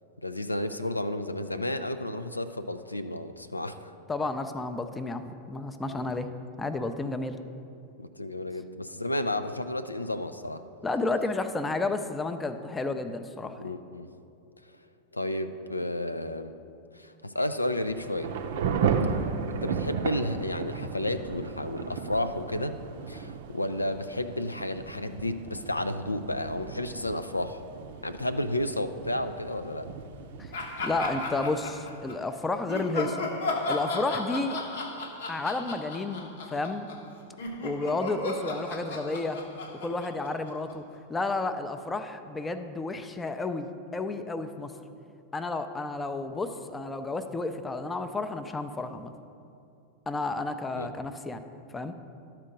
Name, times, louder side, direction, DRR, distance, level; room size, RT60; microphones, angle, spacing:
voice 1, 0.2-3.8 5.8-6.1 8.0-10.6 13.6-14.1 15.1-16.5 16.9-18.3 19.4-22.8 23.1-27.6 28.0-29.9 50.8-50.9, left 1 dB, 85° left, 9 dB, 0.3 m, -32 dB
voice 2, 4.1-6.3 6.6-7.4 10.8-13.6 30.4-30.5 30.8-33.3 33.7-34.6 35.3-36.9 37.6-39.4 39.8-40.8 41.1-44.7 45.3-49.1 50.1-51.4 51.7-52.0, left 3 dB, 15° left, 9 dB, 0.4 m, -31 dB
Thunder / Rain, 17.7-32.1, right 6 dB, 55° right, 0.5 m, -35 dB
sound 1, 30.5-32.2 32.7-41.0, left 2 dB, 60° left, 0.8 m, -35 dB
12.0 x 4.4 x 5.1 m, 2.7 s
figure-of-eight pair, 90°, 0 cm